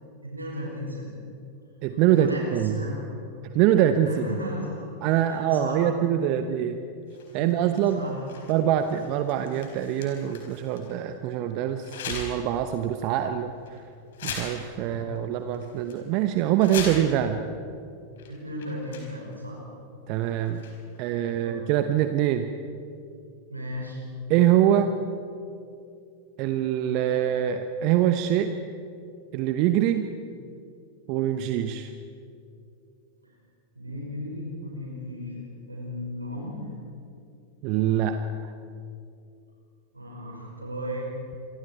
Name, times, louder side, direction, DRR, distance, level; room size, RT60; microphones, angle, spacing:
voice 1, 0.2-1.1 2.1-3.3 4.0-4.9 5.3-5.8 7.4-8.2 14.7-15.1 18.3-19.6 21.2-21.6 23.5-24.0 33.2-33.3 33.7-35.4 35.7-36.6 39.9-41.1, equal, 85° right, -3 dB, 5.5 m, -35 dB
voice 2, 1.8-2.8 3.5-4.2 5.0-6.8 7.3-8.0 8.5-13.5 14.2-17.4 20.1-20.6 21.0-22.5 24.3-24.9 26.4-28.5 29.3-30.1 31.1-31.9 37.6-38.2, right 11 dB, 45° right, 8 dB, 1.0 m, -24 dB
sound 1, 7.1-11.0 11.8-12.5 12.9-13.0 13.7-13.8 14.1-14.9 15.2-15.3 15.5-16.0 16.4-17.3 18.2-18.3 18.6-19.4 20.4-21.0, left 5 dB, 60° left, 4.6 m, -39 dB
28.0 x 24.0 x 4.6 m, 2.6 s
figure-of-eight pair, 90°, 0 cm